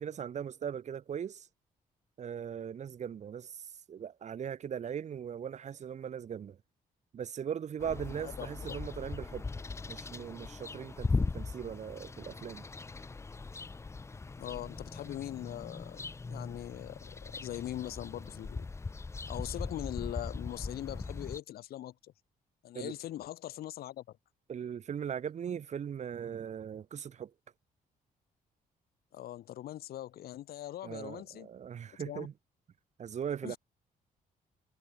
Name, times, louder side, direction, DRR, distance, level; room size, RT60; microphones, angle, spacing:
voice 1, 0.0-1.5 2.2-6.6 7.1-9.5 9.9-12.7 22.7-22.9 24.5-27.3 30.8-32.3 33.0-33.6, right 8 dB, 50° right, 2.4 m, -39 dB
sound 1, 7.8-21.4, left 3 dB, 20° left, 0.7 m, -39 dB
voice 2, 14.4-18.7 19.3-22.1 22.6-24.2 29.1-31.5 32.0-32.3 33.4-33.6, left 13 dB, 85° left, 4.5 m, -41 dB
cardioid pair, 135°, 15 cm